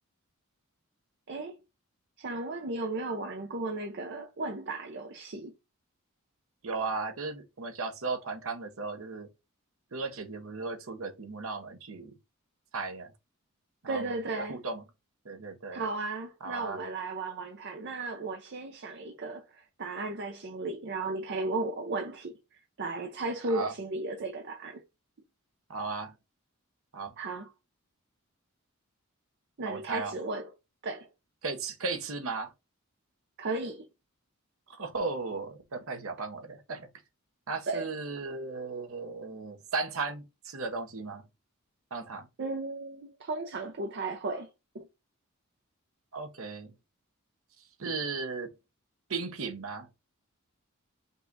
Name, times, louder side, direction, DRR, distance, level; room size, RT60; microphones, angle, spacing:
voice 1, 2.2-5.5 13.9-14.6 15.7-24.8 27.2-27.5 29.6-30.5 30.8-31.1 33.4-33.9 37.7-37.9 42.4-44.5 44.7-44.9, right 2 dB, 55° right, 0.6 m, -35 dB
voice 2, 6.6-9.3 9.9-12.1 12.7-13.1 13.8-14.8 15.2-15.8 16.4-16.8 23.5-23.7 25.7-26.1 26.9-27.1 29.7-30.1 31.4-32.5 34.7-36.9 37.5-41.2 41.9-42.3 46.1-46.7 47.8-48.5 49.1-49.9, right 4 dB, 75° right, 0.9 m, -36 dB
5.4 x 2.3 x 3.9 m
head